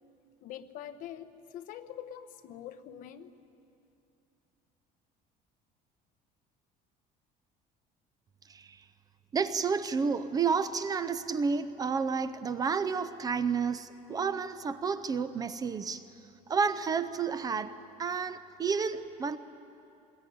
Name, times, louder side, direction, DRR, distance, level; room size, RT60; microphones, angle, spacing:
voice 1, 0.4-3.3, left 10 dB, 55° left, 9 dB, 1.1 m, -44 dB
voice 2, 8.5-8.8 9.3-16.0 16.5-19.4, right 5 dB, 25° right, 13 dB, 0.5 m, -31 dB
21.0 x 20.5 x 9.3 m, 2.7 s
cardioid pair, 170°, 16 cm